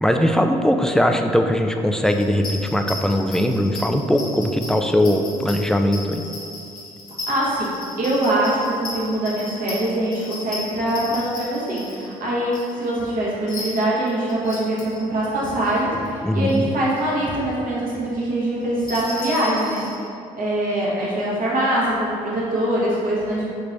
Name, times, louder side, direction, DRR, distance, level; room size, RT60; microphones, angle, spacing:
voice 1, 0.0-6.2 16.2-16.7, equal, 5° left, 5 dB, 0.3 m, -20 dB
sound 1, 2.0-13.1 13.5-15.0 15.4-16.2 16.4-16.6 16.9-17.2 17.5-17.6 18.6-19.9, left 2 dB, 60° left, 1.3 m, -35 dB
voice 2, 7.3-7.7 8.0-19.8 20.4-23.4, right 1 dB, 60° right, -6 dB, 1.3 m, -23 dB
5.2 x 3.2 x 2.6 m, 2.5 s
hypercardioid pair, 50°, 17 cm